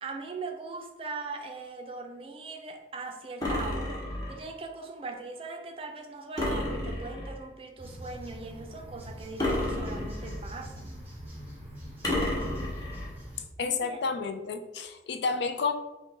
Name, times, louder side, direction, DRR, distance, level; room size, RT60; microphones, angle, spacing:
voice 1, 0.0-11.0 13.6-14.0, right 3 dB, 30° right, 3 dB, 0.4 m, -40 dB
sound 1, 3.4-4.5 6.4-7.4 9.4-10.5 12.0-13.1, left 1 dB, 20° left, 0.8 m, -31 dB
sound 2, 7.8-13.4, equal, 10° right, 1.2 m, -44 dB
voice 2, 13.6-15.7, left 5 dB, 75° left, 8 dB, 0.4 m, -30 dB
5.3 x 2.2 x 3.3 m, 1.1 s
head